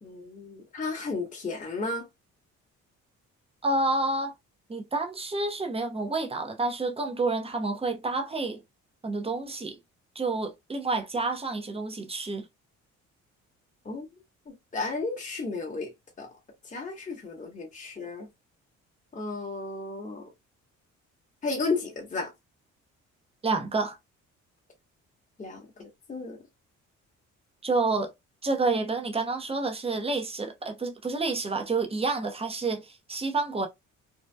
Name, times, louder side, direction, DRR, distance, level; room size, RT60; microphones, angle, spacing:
voice 1, 0.0-2.1 13.8-14.1 14.5-15.9 16.2-16.3 16.6-18.3 19.1-20.3 21.4-22.3 25.4-26.4, left 3 dB, 25° left, 1.0 m, -33 dB
voice 2, 3.6-4.3 4.7-8.6 9.0-9.8 10.2-12.5 23.4-24.0 27.6-28.1 28.4-33.7, right 3 dB, 20° right, 0.7 m, -29 dB
2.7 x 2.2 x 2.2 m
cardioid pair, 90°, 30 cm